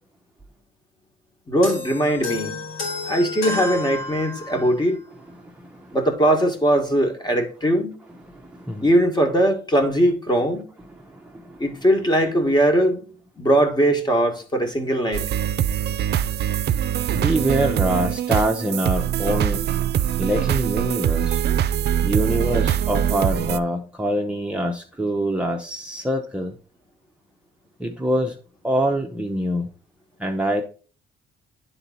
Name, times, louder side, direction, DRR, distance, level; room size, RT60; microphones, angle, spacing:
voice 1, 1.5-2.6 3.1-5.0 5.9-8.0 8.8-10.7 11.6-13.1 13.4-15.3, right 1 dB, 20° left, 1.8 m, -20 dB
sound 1, 1.6-4.8, left 3 dB, 85° left, 3.2 m, -31 dB
voice 2, 5.4-6.0 8.2-8.9 10.9-11.6 17.1-19.6 20.2-21.4 22.0-26.5 27.8-28.4 28.6-29.7 30.2-30.6, right 1 dB, 5° right, 0.8 m, -25 dB
sound 2, 15.1-23.6, right 10 dB, 55° right, 0.4 m, -23 dB
9.9 x 4.0 x 4.1 m
cardioid pair, 90°, 20 cm